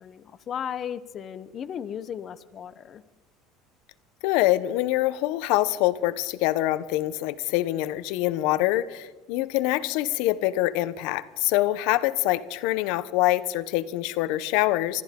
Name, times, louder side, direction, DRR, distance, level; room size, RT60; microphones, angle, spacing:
voice 1, 0.0-3.0, left 8 dB, 40° left, 12 dB, 0.8 m, -35 dB
voice 2, 4.2-15.0, left 16 dB, 75° left, 15 dB, 0.7 m, -25 dB
24.5 x 13.5 x 3.7 m, 1.2 s
supercardioid pair, 115°, 0 cm